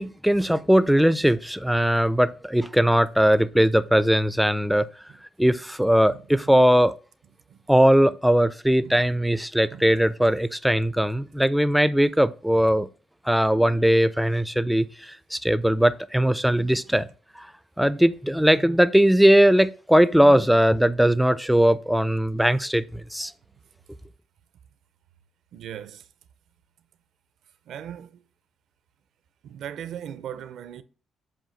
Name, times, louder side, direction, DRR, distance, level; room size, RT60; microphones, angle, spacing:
voice 1, 0.0-4.9 5.4-6.9 7.7-12.9 13.3-17.1 17.4-17.5 17.8-23.3, equal, ahead, 0.3 m, -20 dB
voice 2, 25.5-26.1 27.7-28.2 29.4-30.8, right 9 dB, 75° right, 0.4 m, -38 dB
7.5 x 2.6 x 5.0 m
cardioid pair, 90°, 0 cm